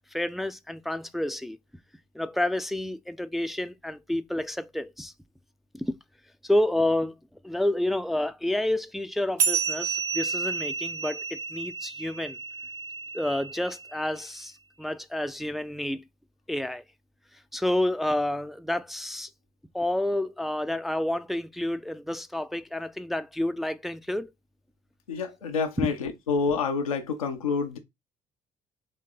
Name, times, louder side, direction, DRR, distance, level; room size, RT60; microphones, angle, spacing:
voice 1, 0.1-1.6 2.1-5.1 5.7-6.0 6.4-7.2 7.4-12.4 13.1-14.5 14.8-16.0 16.5-16.8 17.5-19.3 19.7-24.3 25.8-25.9, left 1 dB, ahead, 0.4 m, -29 dB
sound 1, 9.4-14.3, right 5 dB, 65° right, 1.1 m, -31 dB
voice 2, 25.1-27.8, left 5 dB, 85° left, 0.7 m, -28 dB
4.2 x 2.9 x 3.8 m
figure-of-eight pair, 50°, 18 cm